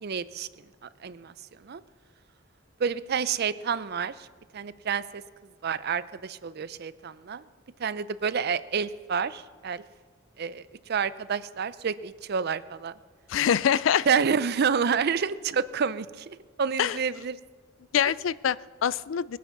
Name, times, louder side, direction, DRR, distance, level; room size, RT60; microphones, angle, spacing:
voice 1, 0.0-0.5 0.8-1.3 1.6-1.8 2.8-4.1 4.5-5.2 5.6-7.4 7.8-9.8 10.4-12.9 14.1-17.4, right 6 dB, 55° right, 16 dB, 0.5 m, -29 dB
voice 2, 13.3-14.1 16.8-17.0 17.9-19.4, left 8 dB, 70° left, 19 dB, 0.4 m, -25 dB
21.0 x 9.3 x 5.9 m, 1.5 s
head